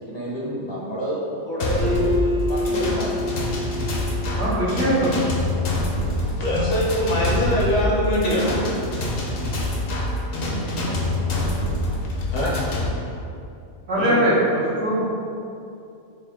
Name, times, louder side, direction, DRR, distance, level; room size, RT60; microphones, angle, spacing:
voice 1, 0.0-3.1 5.8-6.1, right 1 dB, 35° left, -6 dB, 0.5 m, -29 dB
sound 1, 1.6-12.9, left 1 dB, 60° left, 0.7 m, -26 dB
Acoustic guitar, 1.8-5.2, left 1 dB, 50° right, 0.7 m, -28 dB
voice 2, 4.4-5.1 13.9-14.3 14.8-15.1, equal, 80° right, -5 dB, 1.2 m, -21 dB
voice 3, 6.1-8.6 12.3-12.6 13.9-14.5, equal, 80° left, -4 dB, 1.3 m, -23 dB
5.4 x 2.1 x 3.5 m, 2.6 s
omnidirectional pair, 1.2 m